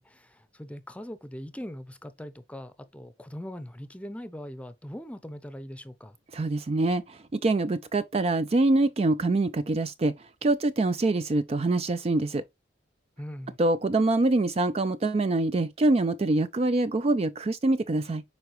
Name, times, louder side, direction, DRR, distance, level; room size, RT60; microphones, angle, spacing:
voice 1, 0.0-6.2 13.2-13.6, equal, 5° left, 0.7 m, -41 dB
voice 2, 6.3-12.4 13.6-18.2, right 2 dB, 35° right, 0.4 m, -25 dB
7.7 x 4.7 x 3.1 m
head